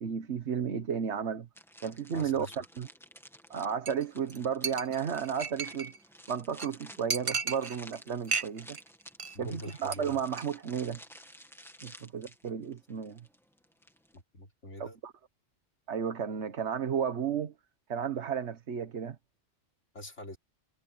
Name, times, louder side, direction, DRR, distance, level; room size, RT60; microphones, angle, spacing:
voice 1, 0.0-1.5 1.8-2.9 3.5-5.9 6.3-8.8 9.4-11.0 11.8-13.3 14.8-15.1 15.9-17.5 17.9-19.2, right 7 dB, 70° right, 1.5 m, -33 dB
sound 1, 1.6-14.2, equal, ahead, 2.2 m, -53 dB
voice 2, 2.1-2.5 9.3-10.2 14.1-15.0 19.9-20.4, left 1 dB, 85° left, 3.9 m, -44 dB
Chink clink, 3.9-4.0 4.3-4.4 4.6-6.0 6.3-6.4 6.6-6.7 7.1-8.0 8.3-8.8 9.1-9.4 9.6-10.0 10.3-10.4, right 5 dB, 35° right, 0.6 m, -34 dB
omnidirectional pair, 1.2 m